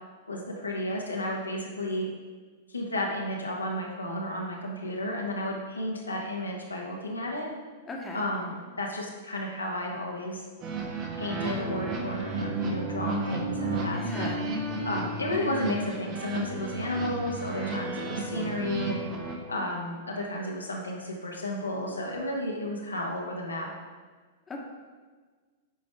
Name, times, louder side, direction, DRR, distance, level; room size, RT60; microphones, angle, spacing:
voice 1, 0.3-2.1 2.7-7.5 8.1-10.4 11.2-14.3 14.8-19.0 19.5-23.7, left 1 dB, 80° left, -1 dB, 1.3 m, -32 dB
voice 2, 7.9-8.2 13.9-14.4 24.5-24.6, left 2 dB, 15° left, -1 dB, 1.3 m, -38 dB
sound 1, 10.6-19.3, right 2 dB, 35° right, 1.3 m, -33 dB
9.2 x 5.1 x 3.6 m, 1.4 s
figure-of-eight pair, 100°, 0 cm